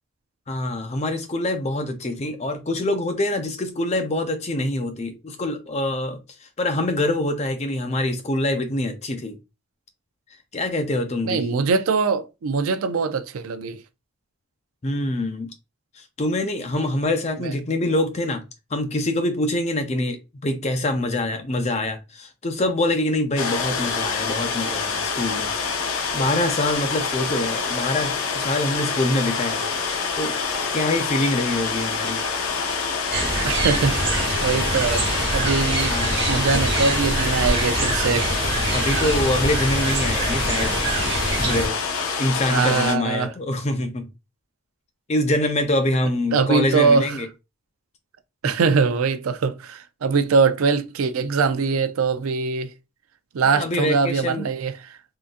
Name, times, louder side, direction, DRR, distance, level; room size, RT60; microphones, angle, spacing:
voice 1, 0.5-6.2 6.6-9.4 10.5-11.4 14.8-15.5 16.2-18.4 18.7-29.7 30.2-30.4 30.7-32.2 35.9-36.5 38.7-40.8 41.4-41.8 42.2-44.1 45.1-47.3 48.4-48.5 53.4-54.5, left 1 dB, 30° left, 0.5 m, -25 dB
voice 2, 11.2-13.8 17.4-17.5 33.4-35.1 35.3-35.9 36.3-38.3 42.5-43.3 46.3-47.2 48.4-52.7 53.3-54.7, right 5 dB, 85° right, 0.4 m, -22 dB
sound 1, 23.4-43.0, left 5 dB, 85° left, 0.7 m, -26 dB
sound 2, 33.1-41.7, right 2 dB, 55° right, 1.2 m, -25 dB
3.7 x 2.6 x 2.4 m
head